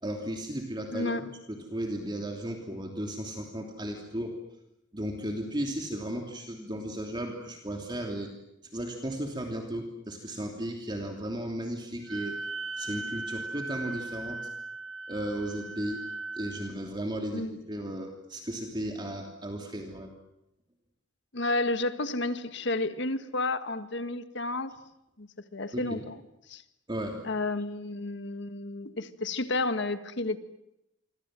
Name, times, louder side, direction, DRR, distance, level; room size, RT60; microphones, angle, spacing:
voice 1, 0.0-1.2 1.5-4.4 4.9-8.3 8.7-12.4 12.8-14.4 15.1-16.0 16.3-20.1 25.7-26.0 26.9-27.2, right 1 dB, 25° right, 2 dB, 3.0 m, -35 dB
voice 2, 0.9-1.3 17.3-17.5 21.3-24.7 25.2-26.2 26.5-26.6 27.3-30.4, left 2 dB, 65° left, 10 dB, 1.7 m, -31 dB
Wind instrument woodwind instrument, 12.1-16.8, right 3 dB, 90° right, 1.3 m, -38 dB
28.0 x 25.0 x 7.7 m, 0.84 s
head